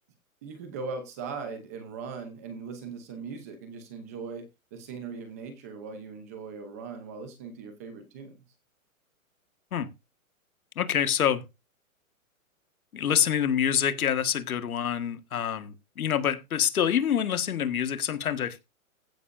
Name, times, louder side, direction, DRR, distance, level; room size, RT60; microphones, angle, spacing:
voice 1, 0.4-8.4, right 5 dB, 10° right, 0.7 m, -39 dB
voice 2, 10.8-11.4 12.9-18.6, left 9 dB, 85° left, 1.9 m, -26 dB
15.5 x 9.8 x 2.6 m
hypercardioid pair, 175°, 42 cm